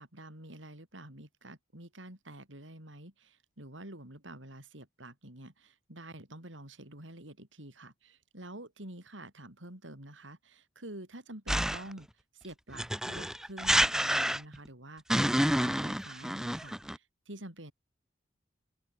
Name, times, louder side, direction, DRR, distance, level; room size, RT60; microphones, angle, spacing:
voice 1, 0.0-12.1 12.3-17.7, right 1 dB, 90° right, 7.7 m, -48 dB
sound 1, 11.5-12.0 12.8-14.7 15.1-17.0, equal, 5° right, 1.1 m, -28 dB
open air
head